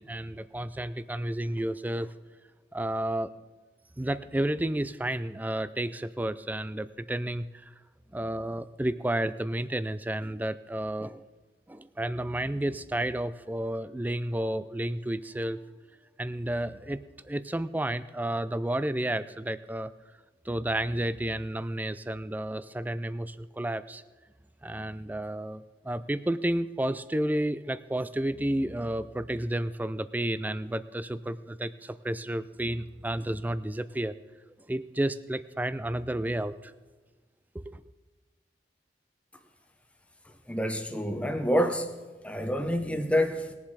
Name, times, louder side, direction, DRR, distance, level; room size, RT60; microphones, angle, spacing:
voice 1, 0.0-2.1 2.7-3.3 4.0-7.7 8.1-11.2 11.7-15.6 16.2-19.9 20.4-24.0 24.6-34.1 34.7-36.7 37.5-37.8, right 1 dB, 10° right, 0.3 m, -31 dB
voice 2, 40.5-42.0 42.2-43.5, equal, 5° left, 0.8 m, -27 dB
20.5 x 7.3 x 4.8 m
head